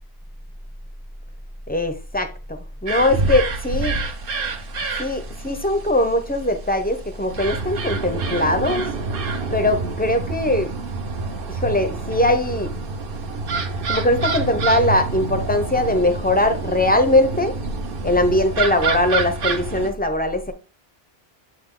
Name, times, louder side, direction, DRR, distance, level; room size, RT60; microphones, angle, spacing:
voice 1, 1.7-4.0 4.7-8.9 9.5-10.7 11.5-12.7 13.9-17.6 18.0-20.5, left 1 dB, 10° left, 0.5 m, -21 dB
sound 1, 2.9-19.9, right 4 dB, 60° right, 0.9 m, -27 dB
7.5 x 3.5 x 3.7 m
omnidirectional pair, 1.1 m